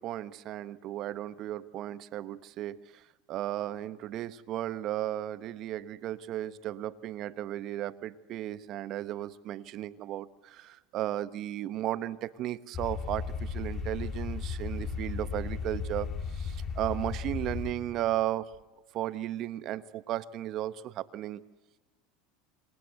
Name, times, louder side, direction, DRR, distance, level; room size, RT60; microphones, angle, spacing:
voice 1, 0.0-3.0 3.3-18.5 18.9-21.4, right 13 dB, 50° right, 16 dB, 1.1 m, -35 dB
sound 1, 12.7-17.7, left 5 dB, 35° left, 3.7 m, -35 dB
27.0 x 25.5 x 8.1 m, 1.2 s
supercardioid pair, 105°, 0 cm